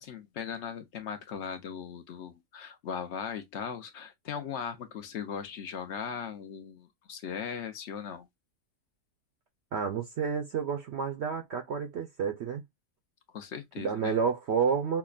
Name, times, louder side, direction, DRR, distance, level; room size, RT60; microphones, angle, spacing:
voice 1, 0.0-8.3 13.3-14.2, left 7 dB, 60° left, 0.9 m, -38 dB
voice 2, 9.7-12.6 13.8-15.0, right 6 dB, 60° right, 0.8 m, -30 dB
5.8 x 2.1 x 2.3 m
omnidirectional pair, 1.5 m